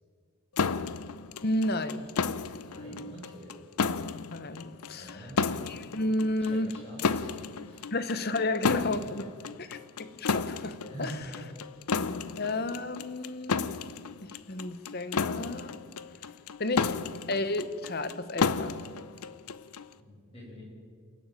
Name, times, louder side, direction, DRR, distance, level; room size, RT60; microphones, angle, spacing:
sound 1, 0.6-19.9, left 5 dB, 85° left, 0.6 m, -33 dB
voice 1, 1.4-2.1 2.6-3.1 4.3-5.3 5.7-6.7 7.9-9.3 9.6-11.2 12.4-13.7 14.2-15.7 16.2-16.3 16.6-17.0 17.3-18.8, left 2 dB, 45° left, 13 dB, 1.0 m, -32 dB
voice 2, 2.6-3.5 4.9-5.4 6.4-7.9 9.0-9.1 10.9-11.5 20.0-20.6, right 1 dB, 25° left, -3 dB, 7.1 m, -45 dB
28.0 x 11.5 x 9.0 m, 2.1 s
head